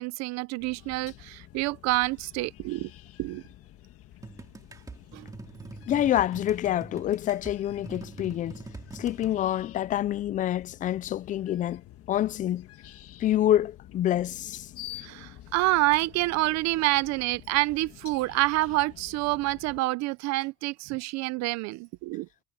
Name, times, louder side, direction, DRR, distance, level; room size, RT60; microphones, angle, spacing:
voice 1, 0.0-2.9 3.2-3.4 5.1-5.3 15.0-22.3, right 21 dB, 65° right, 0.6 m, -27 dB
sound 1, 0.6-19.8, left 14 dB, 50° left, 1.8 m, -49 dB
sound 2, 4.2-9.4, right 3 dB, 10° right, 2.5 m, -44 dB
voice 2, 5.9-8.6 8.9-11.8 12.1-12.7 13.2-14.7, left 12 dB, 30° left, 0.3 m, -27 dB
cardioid pair, 150°, 29 cm